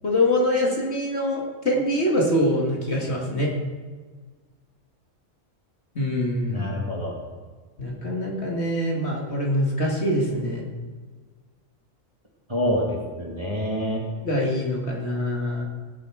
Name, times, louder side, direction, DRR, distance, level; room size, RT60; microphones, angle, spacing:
voice 1, 0.0-3.5 6.0-6.7 7.8-10.6 14.2-15.6, left 1 dB, 55° left, -2 dB, 2.4 m, -24 dB
voice 2, 6.4-7.2 12.5-14.0, equal, 20° right, -3 dB, 2.7 m, -27 dB
17.0 x 7.8 x 4.9 m, 1.4 s
omnidirectional pair, 1.4 m